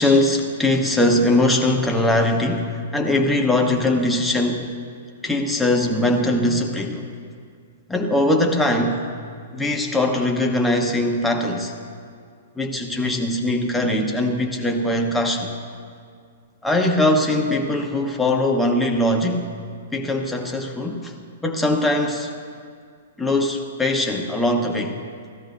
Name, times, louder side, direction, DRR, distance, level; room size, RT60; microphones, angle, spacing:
voice 1, 0.0-4.6 5.2-7.1 7.9-9.0 9.5-11.7 12.6-15.5 16.6-19.5 19.9-21.1 21.4-22.3 23.2-25.0, left 1 dB, 5° left, 1 dB, 1.0 m, -21 dB
15.5 x 13.5 x 2.6 m, 2.2 s
hypercardioid pair, 130°, 0 cm